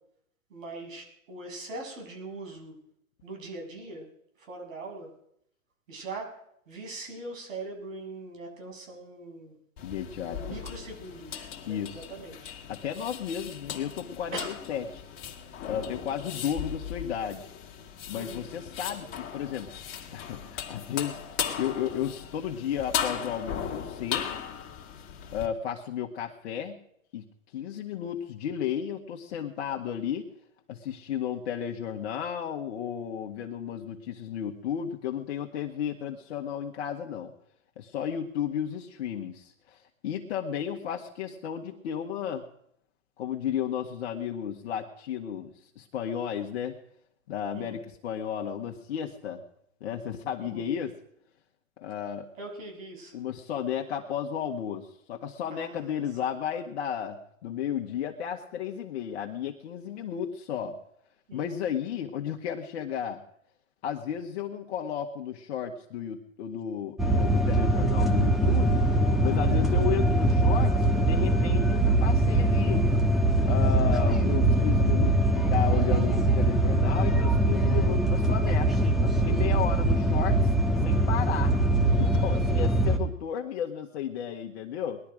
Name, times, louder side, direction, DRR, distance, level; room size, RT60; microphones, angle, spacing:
voice 1, 0.5-2.8 3.2-4.1 4.4-5.1 5.9-6.4 6.7-9.6 10.2-12.5 14.3-14.6 18.1-18.5 47.5-47.8 50.4-50.7 52.4-53.1 55.5-55.9 61.3-61.6, right 2 dB, 65° right, 2 dB, 7.3 m, -41 dB
voice 2, 9.8-10.6 11.7-12.0 12.7-15.0 15.6-17.5 18.1-19.7 20.1-21.2 21.6-24.3 25.3-26.8 27.1-27.2 27.5-30.3 30.7-37.3 37.8-42.5 43.2-46.8 47.3-49.4 49.8-50.9 51.8-52.3 53.1-60.8 61.3-63.2 63.8-68.8 69.2-72.9 73.4-80.5 80.8-81.6 82.0-85.0, left 8 dB, 50° left, 2 dB, 1.7 m, -33 dB
sound 1, 9.8-25.5, left 8 dB, 30° left, 2.4 m, -37 dB
sound 2, 67.0-83.0, right 1 dB, ahead, 1.5 m, -23 dB
20.5 x 12.0 x 5.1 m, 0.74 s
hypercardioid pair, 130°, 42 cm